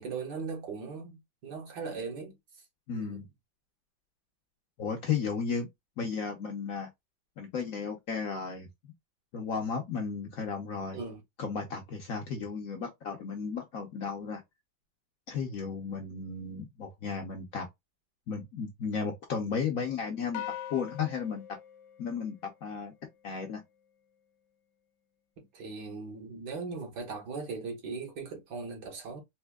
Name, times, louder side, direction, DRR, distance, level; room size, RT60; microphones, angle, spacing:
voice 1, 0.0-2.3 2.9-3.2 10.9-11.2 12.3-12.5 25.4-29.2, right 4 dB, 65° right, 1.8 m, -39 dB
voice 2, 2.9-3.3 4.8-5.7 6.0-6.9 7.4-8.7 9.3-11.0 11.4-14.4 15.3-17.7 18.3-20.4 20.7-21.4 22.0-22.9 23.2-23.6, left 6 dB, 60° left, 0.9 m, -34 dB
sound 1, 20.3-22.9, left 11 dB, 75° left, 1.2 m, -42 dB
4.3 x 2.6 x 2.2 m
omnidirectional pair, 2.0 m